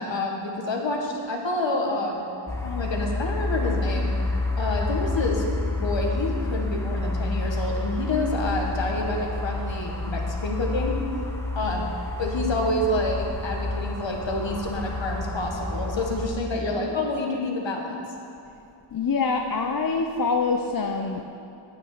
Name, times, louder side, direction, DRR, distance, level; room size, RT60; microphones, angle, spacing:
voice 1, 0.0-2.3 2.6-4.1 4.6-5.4 5.8-11.0 11.5-11.9 12.2-18.0, left 2 dB, 65° left, 1 dB, 1.6 m, -28 dB
sound 1, 2.5-16.3, left 2 dB, 5° left, 1.1 m, -29 dB
voice 2, 18.9-21.2, left 4 dB, 45° left, 3 dB, 0.6 m, -25 dB
9.3 x 7.7 x 6.6 m, 2.6 s
wide cardioid pair, 85°, 49 cm